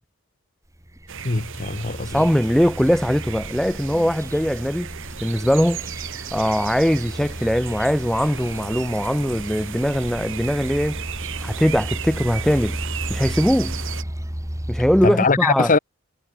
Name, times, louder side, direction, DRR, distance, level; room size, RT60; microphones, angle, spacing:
sound 1, 0.8-15.1, equal, 15° right, 2.3 m, -34 dB
sound 2, 1.1-14.0, right 8 dB, 60° right, 2.5 m, -35 dB
voice 1, 1.2-2.1 15.0-15.8, left 4 dB, 35° left, 1.0 m, -21 dB
voice 2, 2.1-4.9 5.2-5.8 6.3-11.0 11.4-12.8 13.1-13.8 14.7-15.7, equal, ahead, 0.8 m, -21 dB
head